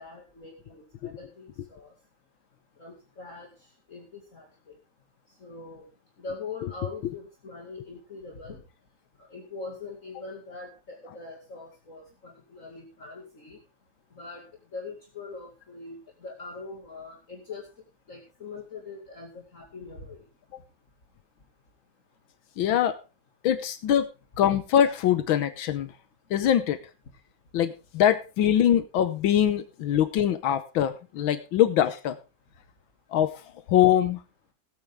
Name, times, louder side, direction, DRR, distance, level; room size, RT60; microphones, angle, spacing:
voice 1, 0.0-1.9 2.8-3.5 3.9-4.5 5.4-5.8 6.2-8.6 9.3-13.6 14.2-14.4 14.7-16.0 16.2-17.6 18.1-20.2, left 4 dB, 40° left, 0 dB, 2.6 m, -42 dB
voice 2, 22.6-22.9 23.4-24.1 24.4-25.9 26.3-26.8 27.5-32.2 33.1-33.3 33.7-34.2, left 10 dB, 85° left, 11 dB, 1.7 m, -23 dB
17.0 x 9.1 x 3.6 m, 0.30 s
omnidirectional pair, 2.1 m